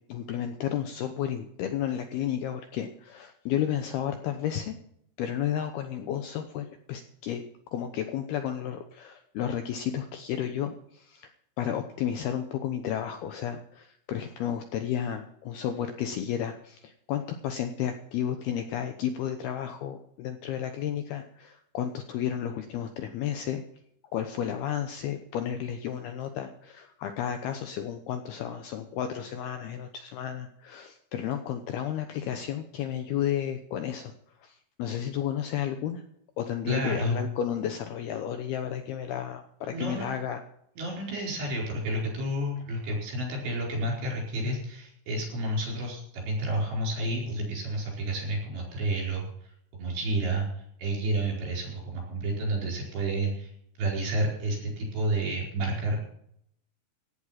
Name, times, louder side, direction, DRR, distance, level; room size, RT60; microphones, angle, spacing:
voice 1, 0.1-4.8 5.2-7.4 7.7-11.3 11.6-23.6 24.1-34.1 34.4-36.0 36.4-40.4, left 9 dB, 75° left, 7 dB, 2.4 m, -32 dB
voice 2, 36.7-37.2 39.7-40.1 40.8-53.5 53.8-56.0, right 1 dB, 65° right, -1 dB, 6.9 m, -30 dB
16.5 x 9.7 x 5.9 m, 0.71 s
omnidirectional pair, 5.5 m